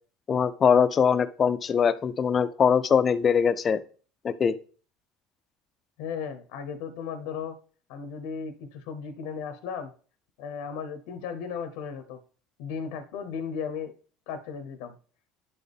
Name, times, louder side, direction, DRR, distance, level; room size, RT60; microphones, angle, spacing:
voice 1, 0.3-3.8 4.2-4.6, left 7 dB, 30° left, 14 dB, 0.5 m, -22 dB
voice 2, 6.0-7.6 7.9-9.9 10.4-12.2 12.6-13.9 14.3-14.9, left 6 dB, 80° left, 10 dB, 0.8 m, -35 dB
10.5 x 4.2 x 3.4 m, 0.41 s
supercardioid pair, 115°, 0 cm